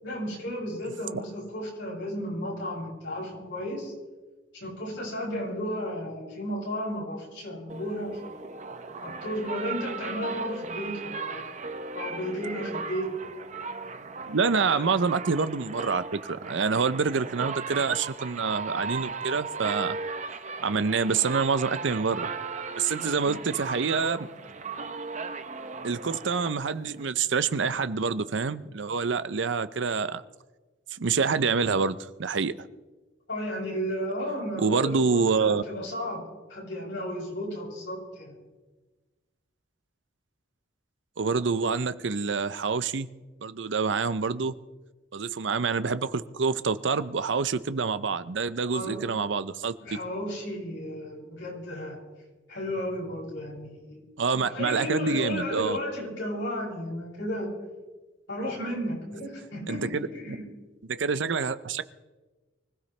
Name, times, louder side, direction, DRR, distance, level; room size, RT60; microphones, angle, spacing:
voice 1, 0.0-3.9 4.5-8.2 9.0-11.5 11.9-13.1 14.7-14.8 23.2-23.4 33.3-36.2 36.5-38.4 48.7-49.0 49.8-52.0 52.5-54.0 54.3-57.5 58.3-60.4, equal, 70° left, -4 dB, 7.3 m, -33 dB
sound 1, 7.7-27.1, right 4 dB, 40° right, 0.8 m, -37 dB
voice 2, 14.3-20.0 20.6-22.3 22.8-24.3 25.8-30.2 30.9-32.7 34.6-35.6 41.2-43.1 43.4-44.5 45.1-50.0 54.2-55.8 59.7-60.1 60.8-61.8, right 5 dB, 70° right, 14 dB, 0.6 m, -27 dB
25.0 x 16.0 x 3.3 m, 1.2 s
head